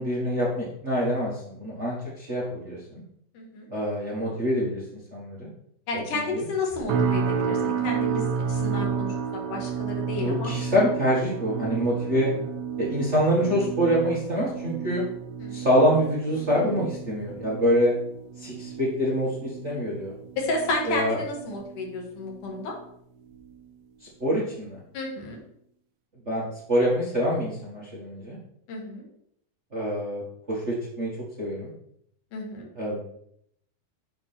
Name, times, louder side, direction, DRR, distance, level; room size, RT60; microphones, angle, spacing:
voice 1, 0.0-2.8 3.7-4.8 5.1-5.5 6.1-6.4 10.2-12.3 12.8-15.0 15.5-17.9 18.4-20.1 20.9-21.2 24.2-24.8 26.2-28.4 29.7-30.2 30.5-31.1 31.4-31.7 32.7-33.0, equal, 30° right, -5 dB, 1.3 m, -25 dB
voice 2, 3.3-3.7 5.9-9.1 9.5-10.5 12.0-12.3 15.4-15.5 20.4-22.7 24.9-25.4 28.7-29.0 32.3-32.7, left 2 dB, 75° left, 0 dB, 3.2 m, -31 dB
sound 1, 6.9-22.1 22.4-22.8 23.3-23.5, right 6 dB, 70° right, 1.8 m, -31 dB
8.7 x 3.6 x 6.0 m, 0.71 s
omnidirectional pair, 3.7 m